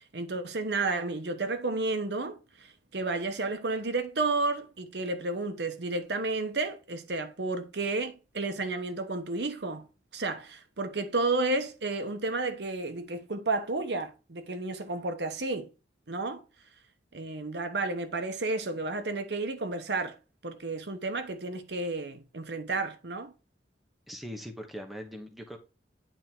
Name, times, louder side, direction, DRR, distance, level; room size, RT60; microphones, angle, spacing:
voice 1, 0.0-9.8 10.1-15.7 16.1-16.4 17.1-20.1 20.4-23.3, right 3 dB, 70° right, 1.0 m, -32 dB
voice 2, 24.1-25.6, equal, ahead, 1.0 m, -41 dB
9.0 x 3.7 x 4.5 m
head